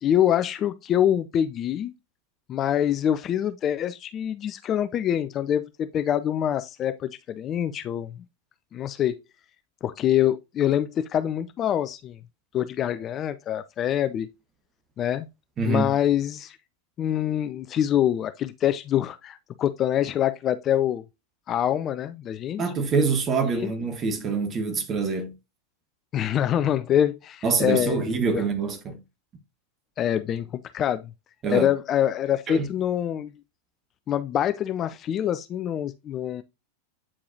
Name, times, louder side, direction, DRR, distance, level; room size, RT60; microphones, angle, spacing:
voice 1, 0.0-1.9 2.5-8.2 8.7-9.2 9.8-12.2 12.5-14.3 15.0-15.3 15.7-16.6 17.0-21.0 21.5-22.6 23.5-23.7 26.1-28.1 28.3-28.5 30.0-31.1 31.5-33.3 34.1-36.4, left 10 dB, 30° left, 0.5 m, -25 dB
voice 2, 15.6-15.9 22.6-25.3 27.4-29.0 31.4-31.7 32.5-32.7, right 4 dB, 25° right, 1.5 m, -25 dB
8.6 x 4.8 x 2.6 m
figure-of-eight pair, 90°, 0 cm